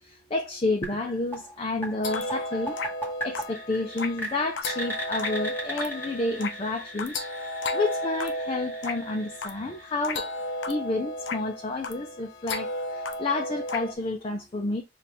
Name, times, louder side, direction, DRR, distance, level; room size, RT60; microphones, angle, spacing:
voice 1, 0.0-2.8 3.2-10.3 10.7-14.8, left 2 dB, 30° left, 0.5 m, -30 dB
sound 1, 0.8-10.6, right 1 dB, 10° left, 1.2 m, -39 dB
sound 2, 2.0-13.9, left 1 dB, 85° left, 0.6 m, -34 dB
4.3 x 2.4 x 3.4 m
head